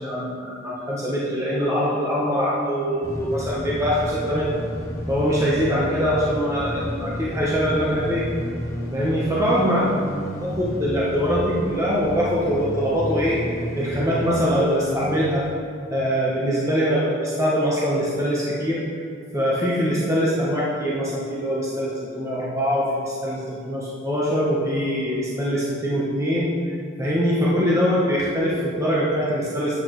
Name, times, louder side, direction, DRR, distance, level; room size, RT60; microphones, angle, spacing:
voice 1, 0.0-4.5 5.1-8.2 8.9-9.8 10.4-13.4 13.7-15.4 15.9-18.8 19.3-26.5 27.0-29.8, equal, 15° right, -6 dB, 0.9 m, -23 dB
sound 1, 3.0-15.5, equal, 15° left, 1.2 m, -32 dB
8.6 x 8.2 x 3.1 m, 2.3 s
head